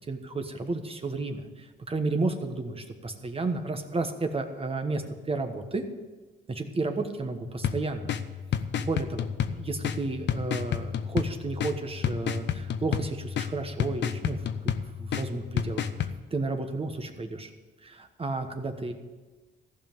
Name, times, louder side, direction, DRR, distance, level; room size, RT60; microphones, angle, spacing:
voice 1, 0.1-5.8 6.5-8.1 8.8-17.5 17.8-18.9, right 3 dB, 30° right, 6 dB, 1.2 m, -32 dB
sound 1, 7.6-16.1, left 8 dB, 65° left, 0.7 m, -31 dB
15.0 x 5.4 x 9.1 m, 1.3 s
cardioid pair, 90°, 20 cm